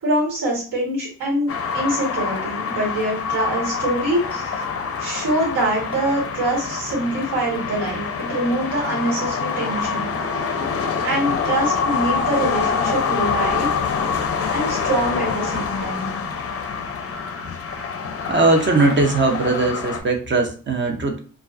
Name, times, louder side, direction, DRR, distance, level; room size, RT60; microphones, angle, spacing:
voice 1, 0.0-4.5 5.0-10.1 10.4-10.6 11.0-13.7 14.5-16.2, right 1 dB, 70° right, -3 dB, 1.3 m, -24 dB
sound 1, 1.5-20.0, left 5 dB, 40° left, 0.5 m, -26 dB
voice 2, 18.1-21.2, right 3 dB, 30° right, 4 dB, 0.6 m, -19 dB
2.3 x 2.3 x 2.3 m, 0.40 s
cardioid pair, 85°, 36 cm